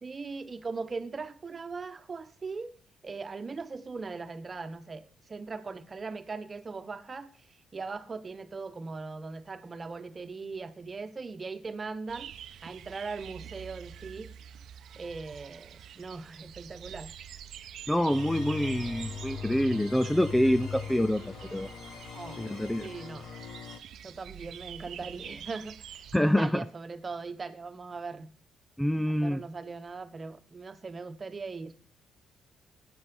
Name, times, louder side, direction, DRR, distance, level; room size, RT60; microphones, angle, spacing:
voice 1, 0.0-2.7 3.0-7.3 7.7-12.3 12.6-14.3 15.0-17.1 22.1-22.5 22.8-23.3 24.0-28.3 29.1-31.8, right 4 dB, 35° right, 10 dB, 1.2 m, -40 dB
sound 1, 12.1-26.2, right 9 dB, 70° right, 0.8 m, -46 dB
voice 2, 17.9-21.2 21.5-21.7 22.4-22.9 26.1-26.6 28.8-29.4, equal, 5° left, 14 dB, 0.5 m, -26 dB
sound 2, 18.1-23.8, left 7 dB, 65° left, 1.2 m, -40 dB
13.5 x 8.8 x 5.4 m, 0.43 s
cardioid pair, 90°, 0 cm